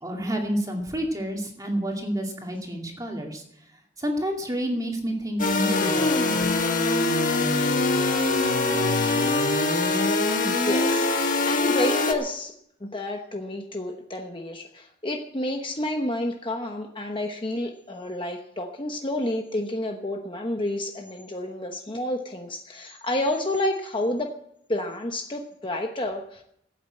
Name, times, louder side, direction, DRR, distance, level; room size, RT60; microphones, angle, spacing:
voice 1, 0.0-3.4 4.0-6.4, equal, 15° right, 1 dB, 2.5 m, -29 dB
sound 1, 5.4-12.1, left 3 dB, 40° left, 1.6 m, -23 dB
voice 2, 10.4-12.5 12.8-24.3 24.7-26.4, left 1 dB, 25° left, 3 dB, 1.0 m, -30 dB
15.5 x 8.7 x 7.8 m, 0.74 s
head